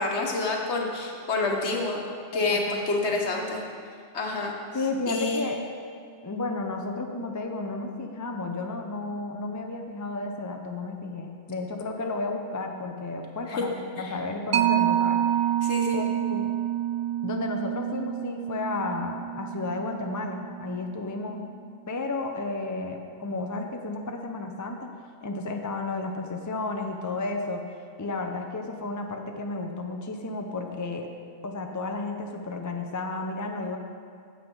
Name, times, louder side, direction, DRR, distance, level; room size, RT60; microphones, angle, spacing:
voice 1, 0.0-2.1 2.3-3.6 4.1-4.5 5.1-5.5 13.5-13.6 14.0-14.2 15.6-16.0, left 3 dB, 60° left, 1 dB, 1.4 m, -28 dB
voice 2, 2.3-2.8 3.1-3.2 4.7-5.6 6.2-15.2 15.9-16.5 17.2-21.4 21.9-24.9 25.2-27.6 28.0-31.1 31.4-33.8, left 3 dB, 25° left, 3 dB, 0.4 m, -32 dB
Mallet percussion, 14.5-21.6, right 11 dB, 60° right, 0.6 m, -28 dB
9.1 x 7.7 x 5.4 m, 2.3 s
omnidirectional pair, 1.3 m